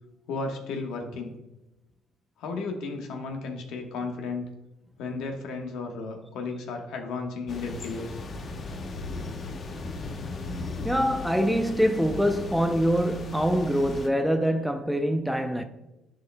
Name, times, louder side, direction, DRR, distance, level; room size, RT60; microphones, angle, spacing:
voice 1, 0.3-1.4 2.4-4.5 5.0-8.2, left 3 dB, 75° left, 1.2 m, -34 dB
sound 1, 7.5-14.1, left 3 dB, 45° left, 0.9 m, -37 dB
voice 2, 10.8-15.6, equal, ahead, 0.5 m, -24 dB
11.0 x 4.9 x 2.2 m
supercardioid pair, 70°, 0 cm